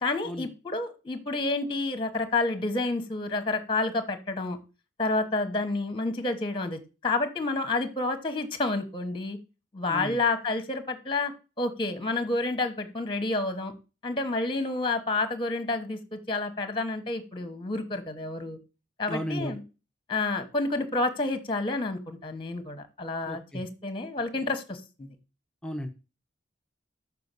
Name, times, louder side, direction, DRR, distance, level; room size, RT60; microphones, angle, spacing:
voice 1, 0.0-4.6 5.0-9.4 9.7-11.3 11.6-13.7 14.0-18.6 19.0-19.6 20.1-25.1, left 2 dB, 25° left, 9 dB, 1.1 m, -29 dB
voice 2, 19.1-19.5 23.3-23.6 25.6-25.9, equal, 5° left, 4 dB, 0.8 m, -34 dB
6.8 x 4.7 x 6.7 m, 0.31 s
head